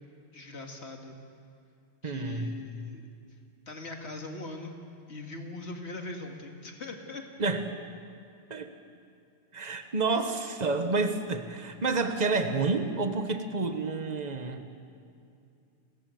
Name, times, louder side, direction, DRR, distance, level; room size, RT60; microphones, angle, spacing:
voice 1, 0.3-1.2 2.0-3.0 3.7-4.8 5.1-7.2, left 2 dB, 65° left, 3 dB, 2.3 m, -41 dB
voice 2, 2.0-2.5 7.4-7.8 8.5-8.7 9.5-14.6, right 3 dB, 35° right, 7 dB, 1.4 m, -29 dB
29.5 x 14.0 x 7.8 m, 2.5 s
omnidirectional pair, 1.2 m